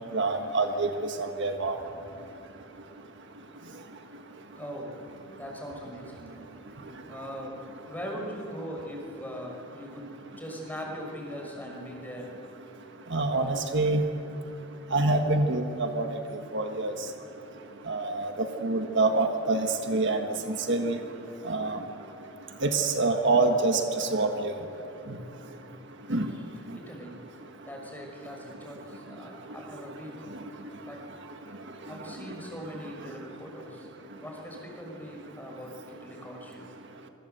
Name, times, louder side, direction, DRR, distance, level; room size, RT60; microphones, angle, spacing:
voice 1, 0.1-0.9 1.4-1.8 13.1-14.0 14.9-16.0 16.5-16.9 17.9-18.3 18.6-20.2 20.7-21.0 21.5-21.8 22.6-24.5 26.1-26.3, right 3 dB, 55° right, 5 dB, 1.6 m, -25 dB
voice 2, 1.8-2.2 4.5-5.0 5.3-6.3 7.1-7.6 7.9-12.3 17.4-17.6 26.3-27.1 27.6-30.2 30.9-31.0 31.9-33.9 34.1-36.7, equal, 10° left, -1 dB, 6.1 m, -41 dB
27.0 x 23.5 x 8.2 m, 2.8 s
head